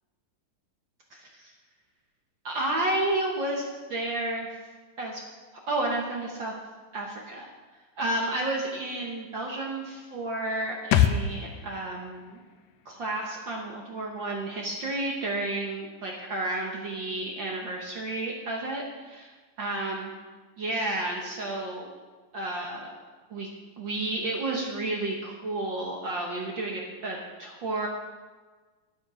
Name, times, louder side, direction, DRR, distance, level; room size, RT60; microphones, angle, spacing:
voice 1, 1.1-1.5 2.4-4.5 5.0-5.2 5.7-6.5 6.9-7.5 8.0-12.4 12.8-20.1 20.6-21.9 22.3-22.9 23.3-23.5 23.8-27.9, right 2 dB, 65° right, -1 dB, 1.1 m, -31 dB
sound 1, 10.9-14.4 14.7-14.8, left 9 dB, 80° left, 1.9 m, -29 dB
11.0 x 9.6 x 4.9 m, 1.3 s
omnidirectional pair, 3.9 m